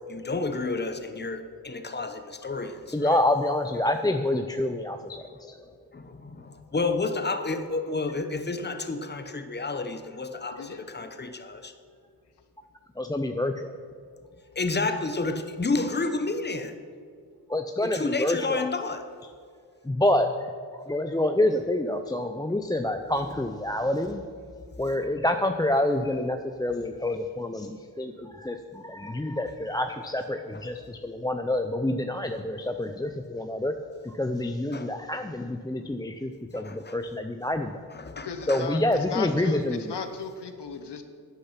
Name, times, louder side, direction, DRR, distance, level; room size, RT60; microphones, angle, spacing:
voice 1, 0.1-3.2 5.9-11.7 14.5-16.8 17.8-19.0 34.7-34.9 36.5-37.0 37.9-38.6, left 3 dB, 25° left, 8 dB, 0.9 m, -30 dB
voice 2, 2.9-5.6 13.0-13.7 17.5-18.7 19.8-20.3 20.7-24.2 24.8-33.7 34.0-37.8 38.5-39.9, left 1 dB, 10° left, 6 dB, 0.5 m, -27 dB
voice 3, 38.2-38.8 39.1-41.0, left 5 dB, 85° left, 8 dB, 1.1 m, -35 dB
11.5 x 10.0 x 5.8 m, 2.2 s
wide cardioid pair, 85°, 40 cm